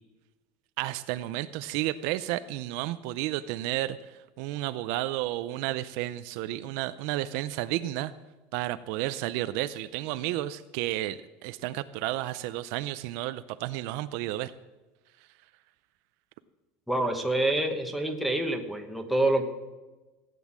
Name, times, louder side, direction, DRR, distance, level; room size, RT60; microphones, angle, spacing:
voice 1, 0.8-8.1 8.5-14.5, right 15 dB, 55° right, 12 dB, 0.5 m, -32 dB
voice 2, 16.9-19.4, right 1 dB, ahead, 3 dB, 1.2 m, -27 dB
16.5 x 9.3 x 7.4 m, 1.2 s
cardioid pair, 175°, 5 cm